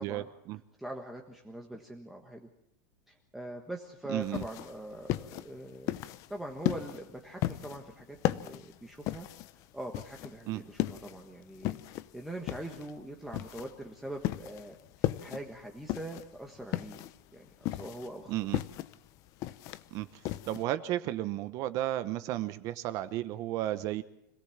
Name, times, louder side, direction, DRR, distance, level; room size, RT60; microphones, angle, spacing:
voice 1, 0.0-0.6 4.1-4.4 10.5-10.6 18.3-18.6 19.9-20.1 20.5-24.0, right 14 dB, 35° right, 13 dB, 0.9 m, -33 dB
voice 2, 0.8-2.5 3.1-5.9 6.3-9.3 9.7-17.0 17.3-18.5, right 1 dB, 5° right, 1 dB, 1.5 m, -43 dB
sound 1, 4.2-20.6, left 15 dB, 35° left, 0.8 m, -36 dB
26.0 x 17.0 x 7.3 m, 0.76 s
supercardioid pair, 165°, 10 cm